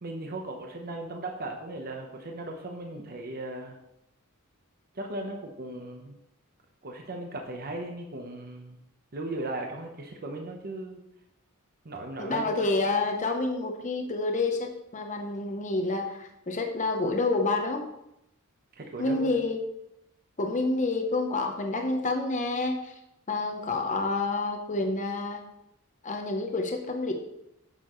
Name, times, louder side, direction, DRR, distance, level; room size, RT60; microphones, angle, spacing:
voice 1, 0.0-3.8 4.9-6.2 6.8-8.8 9.1-11.0 11.8-12.6 18.7-19.4, right 2 dB, 45° right, 2 dB, 0.9 m, -37 dB
voice 2, 12.2-17.8 19.0-19.6 20.4-22.9 23.3-25.4 26.0-27.1, left 3 dB, 35° left, 4 dB, 0.8 m, -28 dB
9.0 x 6.6 x 3.1 m, 0.85 s
head